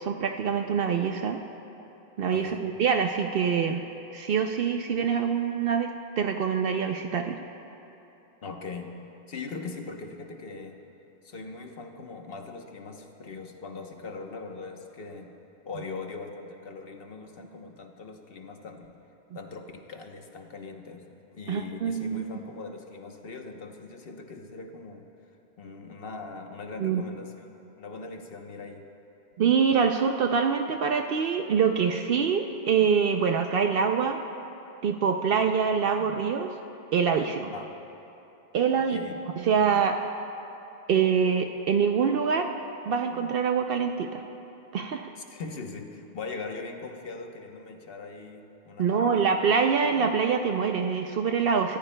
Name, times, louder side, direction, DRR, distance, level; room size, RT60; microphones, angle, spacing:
voice 1, 0.0-1.4 2.2-3.8 4.1-5.9 6.2-7.4 21.5-22.2 26.8-27.0 29.4-34.2 34.8-36.5 36.9-37.5 38.5-39.0 39.4-40.0 40.9-42.5 42.8-44.2 44.7-45.1 48.8-51.8, right 6 dB, 65° right, 5 dB, 0.8 m, -25 dB
voice 2, 2.3-2.7 8.4-10.8 11.2-15.3 15.7-19.0 19.3-21.1 21.3-25.0 25.6-27.5 27.8-28.9 37.5-37.7 38.7-39.1 45.2-49.5, left 4 dB, 65° left, 4 dB, 1.2 m, -40 dB
25.5 x 14.0 x 2.2 m, 2.9 s
omnidirectional pair, 1.0 m